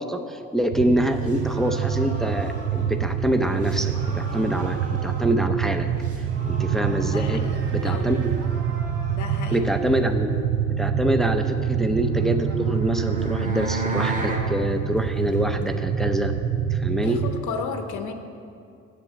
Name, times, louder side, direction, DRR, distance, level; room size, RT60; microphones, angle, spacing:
voice 1, 0.0-5.9 6.5-7.4 7.7-8.4 9.5-10.3 10.8-16.3 16.7-17.2, equal, ahead, 6 dB, 0.6 m, -25 dB
sound 1, 0.7-17.3, right 8 dB, 85° right, 0.6 m, -26 dB
sound 2, 0.8-10.1 11.9-15.8, right 2 dB, 50° right, 1.6 m, -43 dB
voice 2, 7.1-8.1 9.1-9.6 17.0-18.1, left 6 dB, 75° left, 7 dB, 0.9 m, -33 dB
sound 3, 11.9-14.5, right 1 dB, 25° right, 1.8 m, -31 dB
7.7 x 7.4 x 7.5 m, 2.5 s
cardioid pair, 90°, 30 cm